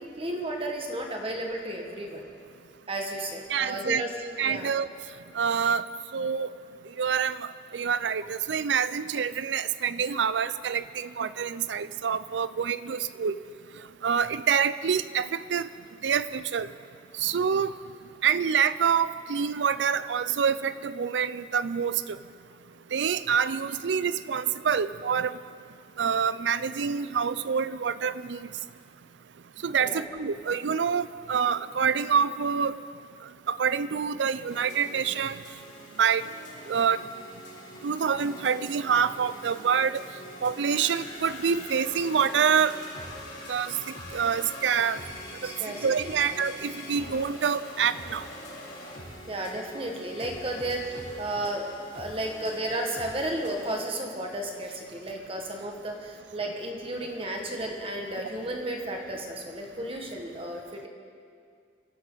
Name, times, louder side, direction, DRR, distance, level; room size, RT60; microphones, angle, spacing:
voice 1, 0.0-2.2 2.9-4.1 4.4-4.8 29.8-30.0 45.4-46.4 49.3-51.7 51.9-60.9, right 1 dB, 30° right, 1 dB, 1.7 m, -33 dB
voice 2, 3.5-4.0 4.4-4.9 5.4-5.8 6.1-6.5 7.0-7.4 7.7-13.3 14.0-15.7 16.0-16.7 17.2-17.7 18.2-22.0 22.9-25.4 26.0-28.4 29.6-32.7 33.5-35.4 36.0-36.2 36.7-37.0 37.8-40.0 40.4-42.7 43.5-43.7 44.1-45.0 45.4-45.5 45.8-48.2, right 7 dB, 85° right, 15 dB, 0.5 m, -26 dB
sound 1, 34.5-53.9, left 1 dB, 85° left, 4.4 m, -44 dB
24.5 x 11.5 x 4.0 m, 2.2 s
head